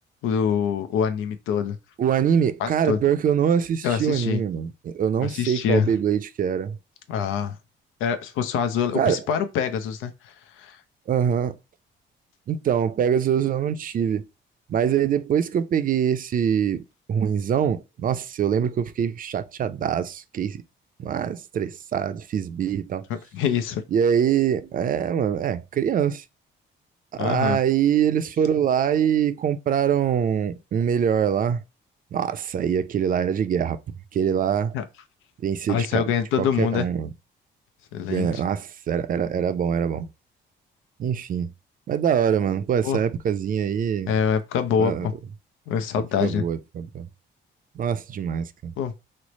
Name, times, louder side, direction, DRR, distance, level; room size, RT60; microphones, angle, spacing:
voice 1, 0.2-1.8 2.6-3.0 3.8-4.4 5.2-5.9 7.1-7.6 8.0-10.8 23.1-23.8 27.2-27.6 34.7-34.8 35.7-36.9 37.9-38.4 42.8-43.0 44.1-45.1 45.7-46.4 48.8-48.9, left 7 dB, 90° left, 0.5 m, -25 dB
voice 2, 2.0-6.8 8.9-9.2 11.1-11.5 12.5-14.2 14.7-16.8 17.1-20.6 21.0-23.0 23.9-26.2 27.1-31.6 32.1-33.8 34.1-34.7 35.4-36.0 36.4-37.1 38.1-40.1 41.0-41.5 41.9-44.2 44.8-45.1 46.2-47.1 47.8-48.7, right 8 dB, 45° right, 0.4 m, -24 dB
3.1 x 2.0 x 4.0 m
cardioid pair, 90°, 20 cm